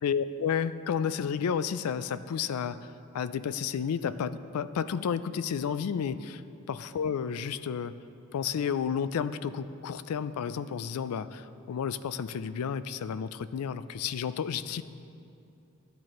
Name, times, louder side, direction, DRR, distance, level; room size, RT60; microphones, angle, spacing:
voice 1, 0.0-2.8 3.1-6.4 6.7-7.9 8.3-14.8, left 7 dB, 90° left, 14 dB, 0.4 m, -31 dB
14.0 x 8.9 x 3.0 m, 2.7 s
head